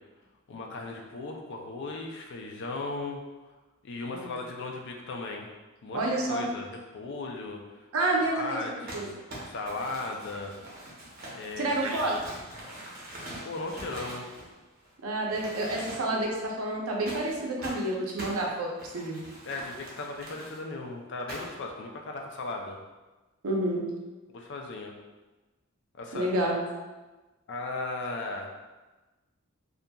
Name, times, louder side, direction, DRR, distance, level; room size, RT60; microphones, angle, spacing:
voice 1, 0.5-3.2 3.8-5.5 5.8-7.9 8.3-9.1 9.4-10.5 11.3-11.8 13.4-14.3 19.4-22.8 24.3-24.9 26.0-26.3 27.5-28.5, left 3 dB, 55° left, 2 dB, 0.4 m, -37 dB
voice 2, 5.9-6.5 7.9-9.1 11.6-12.4 15.0-18.7 18.9-19.2 23.4-23.8 26.1-26.6, right 1 dB, 90° right, -1 dB, 0.6 m, -29 dB
Crumpling crinkling, 8.9-14.9 15.3-16.3 17.1-20.6 21.3-21.7, right 1 dB, 45° right, 0.7 m, -43 dB
2.7 x 2.5 x 2.2 m, 1.2 s
head